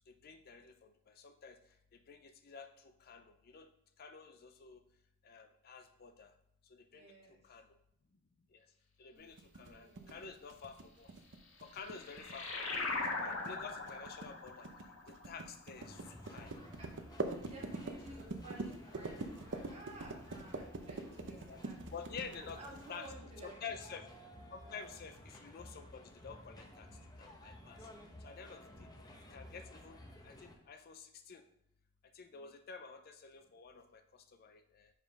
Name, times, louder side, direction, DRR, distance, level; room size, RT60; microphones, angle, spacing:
voice 1, 0.1-1.6 2.1-3.7 4.0-4.8 5.2-6.3 6.7-7.1 7.4-7.7 8.5-8.6 9.0-11.1 11.6-14.7 15.1-16.5 18.0-18.1 21.3-21.6 21.9-22.6 22.9-23.1 23.4-24.0 24.5-26.9 27.2-27.9 28.2-28.9 29.3-30.0 30.2-31.4 32.1-34.9, left 5 dB, 45° left, 7 dB, 0.5 m, -50 dB
voice 2, 6.9-7.4 9.1-9.3 9.6-10.2 16.8-21.9 22.3-24.0 24.5-25.0 32.3-32.5, right 2 dB, 30° right, -3 dB, 1.9 m, -55 dB
sound 1, 9.4-23.1, right 3 dB, 60° right, 0.7 m, -44 dB
sound 2, 11.4-16.5, left 3 dB, 65° left, 1.4 m, -41 dB
sound 3, 15.8-30.6, left 1 dB, 20° left, 0.9 m, -54 dB
5.5 x 4.9 x 5.2 m, 0.76 s
head